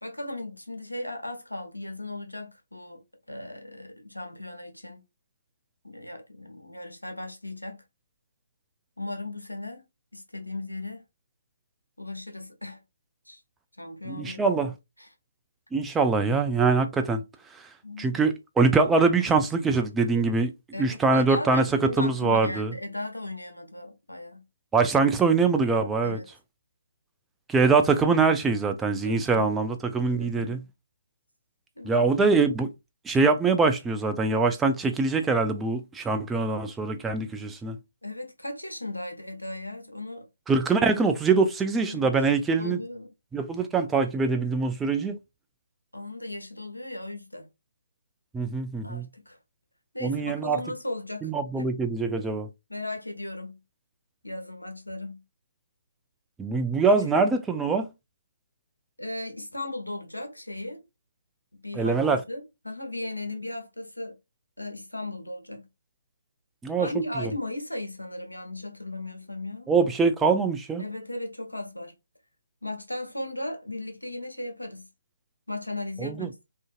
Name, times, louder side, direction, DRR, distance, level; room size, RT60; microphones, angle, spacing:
voice 1, 0.0-3.0 3.3-5.0 5.8-7.8 9.0-9.8 10.1-11.0 12.0-12.8 13.3-13.4 13.8-14.5 15.0-15.1 17.8-18.2 20.7-24.4 26.0-26.3 29.0-29.6 30.1-30.6 31.8-32.3 38.0-40.3 41.9-42.1 42.6-43.1 45.9-47.5 48.8-49.4 49.9-51.7 52.7-53.6 54.2-55.2 57.0-57.1 59.0-60.8 61.5-62.0 62.3-64.2 64.6-65.7 66.8-69.7 70.8-71.9 72.6-74.9 75.5-76.4, left 1 dB, 90° left, 0.8 m, -36 dB
voice 2, 14.1-14.7 15.7-17.2 18.0-20.5 20.8-21.7 22.0-22.7 24.7-26.2 27.5-30.6 31.9-32.7 33.1-37.8 40.5-42.8 43.3-45.1 48.3-49.1 50.0-50.6 51.2-52.5 56.4-57.9 61.8-62.2 66.6-66.9 67.2-67.3 69.7-70.8 76.0-76.3, right 4 dB, 5° right, 0.3 m, -23 dB
2.5 x 2.4 x 2.4 m
figure-of-eight pair, 140°, 0 cm